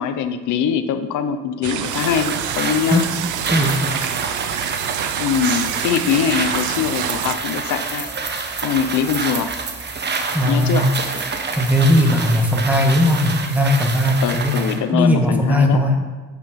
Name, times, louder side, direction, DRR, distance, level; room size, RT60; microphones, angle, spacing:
voice 1, 0.0-3.1 5.2-8.1 8.6-9.5 10.4-10.9 14.2-15.8, left 8 dB, 80° left, 9 dB, 0.6 m, -22 dB
sound 1, 1.6-7.4, right 11 dB, 80° right, 0.5 m, -27 dB
sound 2, 1.8-14.8, right 4 dB, 35° right, 1.0 m, -27 dB
voice 2, 3.5-3.8 10.3-10.9 11.6-14.5 14.9-16.0, left 1 dB, 5° right, 2 dB, 1.4 m, -17 dB
7.1 x 6.1 x 5.6 m, 1.3 s
cardioid pair, 90°, 30 cm